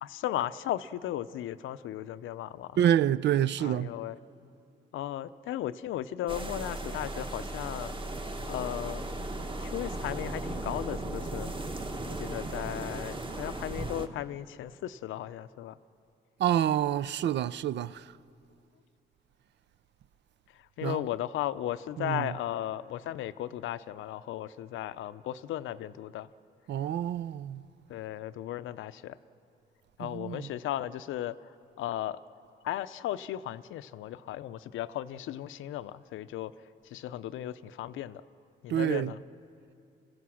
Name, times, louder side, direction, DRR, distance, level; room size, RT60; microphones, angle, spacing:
voice 1, 0.0-2.8 3.6-4.2 4.9-8.0 8.4-9.0 9.6-11.5 12.1-15.8 20.5-26.3 27.9-29.2 30.0-32.2 32.6-38.2 38.6-39.2, left 12 dB, 80° left, 0.6 m, -36 dB
voice 2, 2.8-3.9 16.4-18.1 20.8-21.0 22.0-22.3 26.7-27.6 30.0-30.5 38.7-39.1, right 10 dB, 60° right, 0.5 m, -27 dB
sound 1, 6.3-14.1, right 2 dB, 25° right, 1.5 m, -36 dB
27.0 x 16.5 x 6.3 m
cardioid pair, 90°, 20 cm